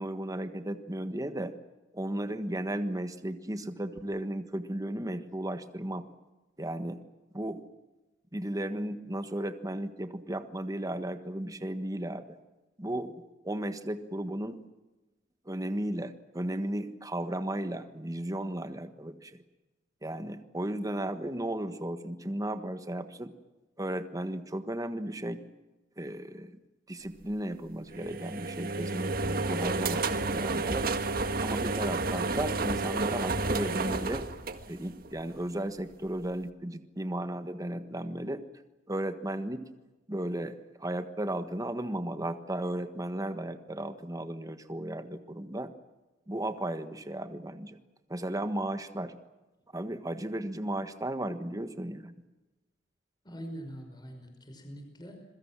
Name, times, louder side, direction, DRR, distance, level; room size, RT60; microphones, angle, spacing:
voice 1, 0.0-1.5 1.9-6.1 6.6-7.0 7.3-7.6 8.3-12.4 12.8-14.6 15.4-19.4 20.0-23.3 23.8-25.4 26.0-26.6 26.9-30.9 31.4-34.3 34.7-38.4 38.9-39.6 40.1-45.7 46.3-47.8 48.1-49.1 49.7-52.1, right 1 dB, 20° right, 9 dB, 1.4 m, -35 dB
sound 1, 27.9-35.2, right 3 dB, 55° right, 1.7 m, -31 dB
voice 2, 53.2-55.3, equal, 25° left, 5 dB, 5.3 m, -43 dB
27.0 x 22.5 x 7.5 m, 1.1 s
head